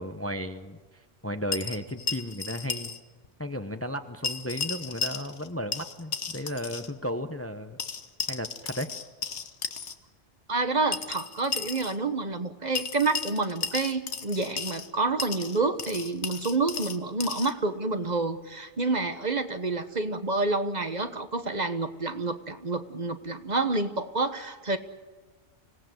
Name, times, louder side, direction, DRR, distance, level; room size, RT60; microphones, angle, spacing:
voice 1, 0.0-2.9 3.4-7.8 8.3-8.9, equal, 15° left, 9 dB, 0.8 m, -34 dB
sound 1, 1.5-3.0 3.2-3.3 4.2-5.5 5.7-6.9 7.8-9.9 10.9-12.0 12.8-14.9 15.2-17.5, left 6 dB, 85° left, 1.5 m, -34 dB
voice 2, 10.5-24.8, right 3 dB, 40° right, 9 dB, 1.3 m, -28 dB
25.5 x 17.5 x 7.8 m, 1.4 s
omnidirectional pair, 1.1 m